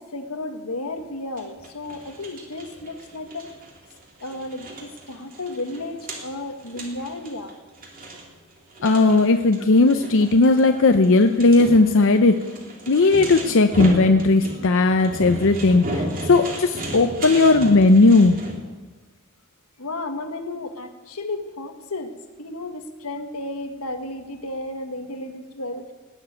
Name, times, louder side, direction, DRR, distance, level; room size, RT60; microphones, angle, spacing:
voice 1, 0.0-3.5 4.2-7.5 19.8-22.1 22.4-25.9, left 2 dB, 90° left, 6 dB, 1.6 m, -33 dB
sound 1, 1.4-18.6, right 1 dB, 40° right, 2.9 m, -34 dB
voice 2, 8.8-12.4 12.9-16.0 16.3-18.4, left 3 dB, 60° left, 7 dB, 0.7 m, -16 dB
18.0 x 7.4 x 9.2 m, 1.2 s
head